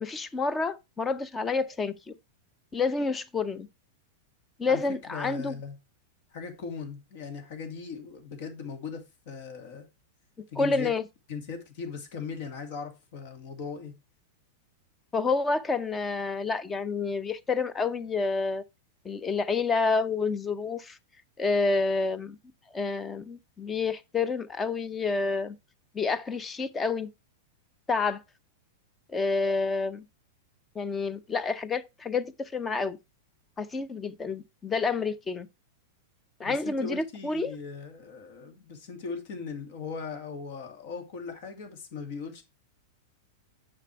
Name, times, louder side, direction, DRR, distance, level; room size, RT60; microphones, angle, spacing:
voice 1, 0.0-2.1 2.7-3.7 4.6-5.6 10.6-11.0 15.1-18.6 19.0-21.0 21.4-22.4 22.7-25.5 25.9-27.1 27.9-28.2 29.1-30.0 30.7-33.0 33.6-35.5 36.4-37.5, left 4 dB, 20° left, 0.7 m, -29 dB
voice 2, 5.1-5.8 6.3-9.8 10.5-10.9 11.3-13.9 36.4-42.4, left 5 dB, 60° left, 2.4 m, -39 dB
7.4 x 5.1 x 4.5 m
hypercardioid pair, 110°, 0 cm